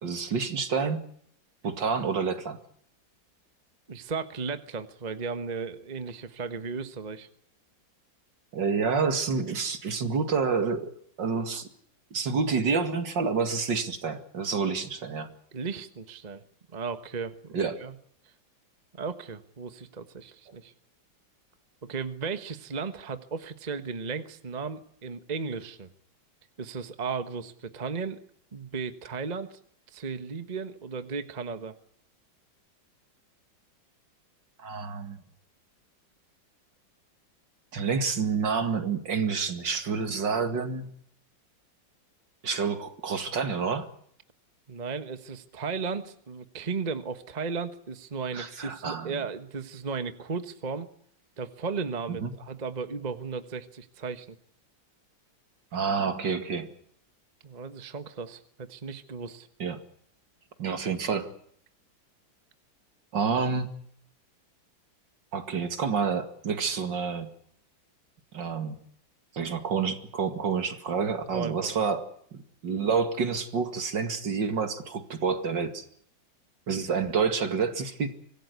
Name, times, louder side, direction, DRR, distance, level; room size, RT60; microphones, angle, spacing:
voice 1, 0.0-1.0 1.6-2.6 8.5-10.9 11.2-11.7 12.1-15.3 17.5-17.7 34.6-35.2 37.7-40.9 42.4-43.9 48.3-49.2 52.2-52.3 55.7-56.7 59.6-59.8 60.6-61.3 63.1-63.7 65.3-67.3 68.3-68.8 69.3-72.1 72.3-75.8 76.7-78.1, right 5 dB, 65° right, 8 dB, 2.8 m, -28 dB
voice 2, 3.9-7.3 15.5-16.4 16.7-18.0 18.9-20.7 21.8-25.9 26.6-28.2 28.5-29.6 29.9-31.8 44.7-50.9 51.4-54.4 57.4-59.5 71.3-71.8, right 5 dB, 25° right, 10 dB, 1.2 m, -35 dB
25.0 x 17.0 x 8.2 m, 0.68 s
omnidirectional pair, 2.1 m